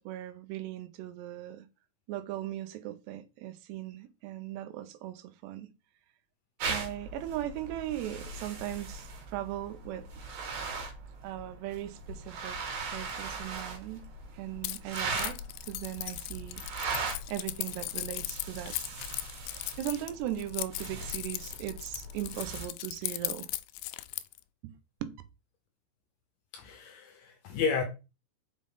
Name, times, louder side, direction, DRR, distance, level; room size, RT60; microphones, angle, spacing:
voice 1, 0.0-1.7 2.1-5.7 6.7-10.3 11.2-12.6 12.9-14.1 14.3-15.4 15.7-16.6 17.3-18.8 19.8-23.5 24.6-24.7 25.0-25.1, right 13 dB, 85° right, 2.9 m, -38 dB
sound 1, 6.6-22.7, right 4 dB, 60° right, 3.6 m, -40 dB
Keys jangling, 14.6-24.4, left 17 dB, 90° left, 2.8 m, -38 dB
voice 2, 26.5-27.8, left 6 dB, 70° left, 2.3 m, -32 dB
6.3 x 5.6 x 3.8 m
omnidirectional pair, 4.9 m